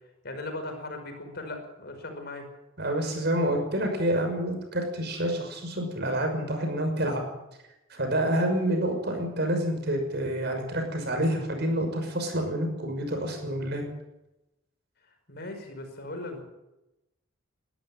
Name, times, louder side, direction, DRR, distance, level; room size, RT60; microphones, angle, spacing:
voice 1, 0.2-2.5 15.3-16.4, left 2 dB, 50° left, 5 dB, 5.4 m, -38 dB
voice 2, 2.8-7.2 7.9-13.8, right 1 dB, 55° right, 4 dB, 6.0 m, -28 dB
22.0 x 13.0 x 9.0 m, 0.94 s
head